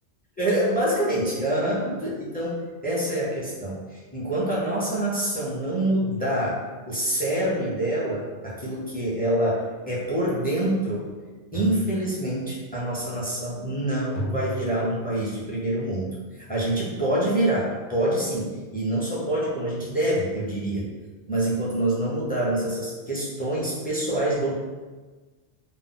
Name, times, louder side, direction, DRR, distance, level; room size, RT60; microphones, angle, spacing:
voice 1, 0.4-6.6 6.9-11.1 11.5-20.9 21.3-24.5, right 1 dB, 10° left, -7 dB, 0.5 m, -26 dB
sound 1, 8.9-15.7, right 1 dB, 90° left, 0.9 m, -40 dB
2.4 x 2.1 x 3.6 m, 1.3 s
omnidirectional pair, 1.1 m